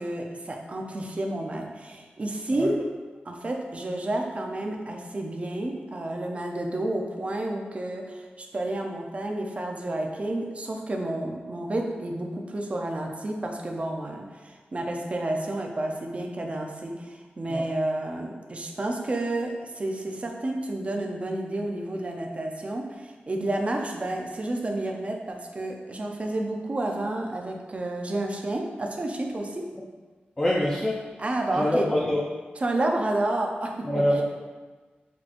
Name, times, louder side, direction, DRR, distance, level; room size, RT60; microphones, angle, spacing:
voice 1, 0.0-2.8 3.3-29.7 31.2-31.9 32.6-34.2, right 1 dB, 35° right, 1 dB, 0.5 m, -30 dB
voice 2, 30.4-31.0 31.6-32.2 33.9-34.2, left 1 dB, 20° left, -5 dB, 0.4 m, -24 dB
6.0 x 3.0 x 2.5 m, 1.3 s
wide cardioid pair, 125°, 4 cm